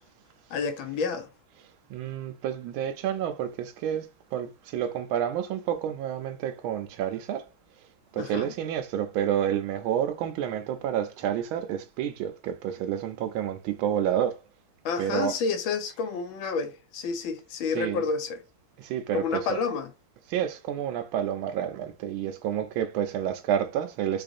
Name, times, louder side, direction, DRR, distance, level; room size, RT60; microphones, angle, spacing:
voice 1, 0.5-1.3 8.1-8.5 14.8-18.4 19.1-19.9, left 5 dB, 80° left, 1.5 m, -30 dB
voice 2, 1.9-7.4 8.1-14.4 15.0-15.3 17.7-18.0 18.8-19.6 20.3-24.2, right 10 dB, 90° right, 1.4 m, -29 dB
4.8 x 2.5 x 2.5 m
omnidirectional pair, 2.2 m